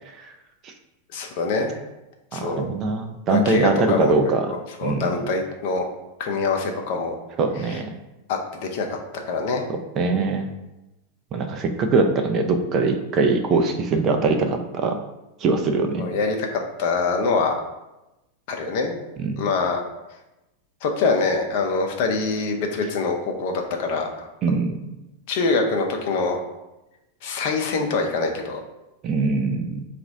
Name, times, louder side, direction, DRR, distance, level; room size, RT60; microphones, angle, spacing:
voice 1, 1.1-1.8 2.3-2.7 3.3-5.9 6.2-7.2 7.7-7.8 8.3-8.9 9.3-9.6 16.0-17.5 18.5-19.0 19.4-19.8 20.8-24.3 25.3-26.4 27.2-28.6, left 4 dB, 50° left, 3 dB, 0.7 m, -24 dB
voice 2, 2.3-4.5 4.8-5.2 7.4-7.9 10.0-10.5 11.3-15.0 15.4-16.0 19.2-19.4 24.4-24.8 29.0-29.9, right 3 dB, 30° right, 5 dB, 0.5 m, -22 dB
3.9 x 2.5 x 4.6 m, 0.97 s
figure-of-eight pair, 90°, 0 cm